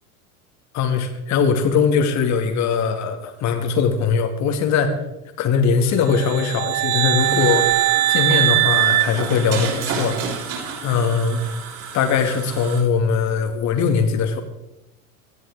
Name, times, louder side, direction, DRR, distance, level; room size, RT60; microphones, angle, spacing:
voice 1, 0.7-5.0 5.4-7.7 8.1-10.2 10.8-11.4 11.9-14.4, left 6 dB, 35° left, 6 dB, 2.1 m, -20 dB
sound 1, 6.1-10.1, right 16 dB, 60° right, 0.7 m, -21 dB
sound 2, 7.2-12.8, right 5 dB, 45° right, 6.8 m, -31 dB
19.5 x 13.5 x 3.6 m, 0.94 s
figure-of-eight pair, 85°, 46 cm